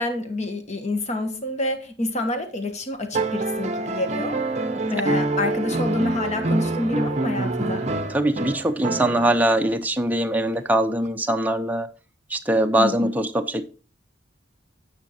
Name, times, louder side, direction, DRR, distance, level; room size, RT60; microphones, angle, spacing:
voice 1, 0.0-4.4 4.9-7.9 12.8-13.1, left 2 dB, 35° left, 1.3 m, -27 dB
sound 1, 3.1-9.6 11.1-11.2, right 2 dB, 35° right, 0.8 m, -26 dB
voice 2, 8.1-11.9 12.3-13.7, right 1 dB, 10° right, 0.6 m, -22 dB
9.2 x 6.3 x 4.2 m
head